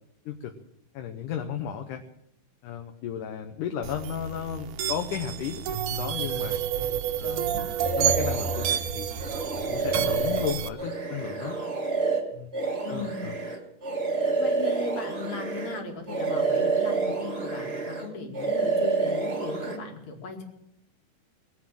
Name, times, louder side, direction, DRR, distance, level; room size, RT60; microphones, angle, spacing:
voice 1, 0.9-2.0 2.6-5.6 5.9-6.6 7.2-7.5 7.8-9.1 9.6-11.6 12.3-12.5 12.9-13.4, left 8 dB, 75° left, 5 dB, 2.4 m, -34 dB
sound 1, 3.8-10.7, right 9 dB, 75° right, 2.2 m, -30 dB
voice 2, 7.2-7.6 12.8-13.2 14.3-20.5, left 3 dB, 60° left, 2 dB, 3.6 m, -37 dB
sound 2, 7.8-8.8 9.2-15.8 16.1-18.1 18.3-19.8, right 4 dB, 25° right, 1.4 m, -28 dB
21.0 x 8.6 x 7.6 m, 0.81 s
omnidirectional pair, 3.8 m